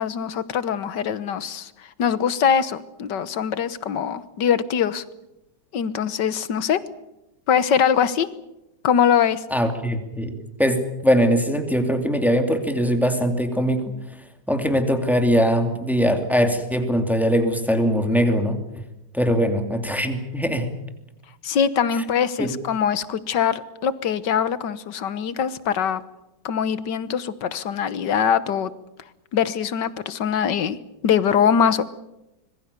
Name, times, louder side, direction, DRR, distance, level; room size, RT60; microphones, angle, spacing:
voice 1, 0.0-1.7 2.0-5.0 5.7-6.8 7.5-8.3 8.8-9.4 21.4-26.0 26.4-28.7 29.3-30.8 31.0-31.8, left 7 dB, 65° left, 15 dB, 1.7 m, -22 dB
voice 2, 9.5-10.3 10.6-13.9 14.5-18.6 19.1-20.7 22.4-22.5, equal, ahead, 6 dB, 2.5 m, -21 dB
25.5 x 22.0 x 6.9 m, 0.93 s
omnidirectional pair, 2.1 m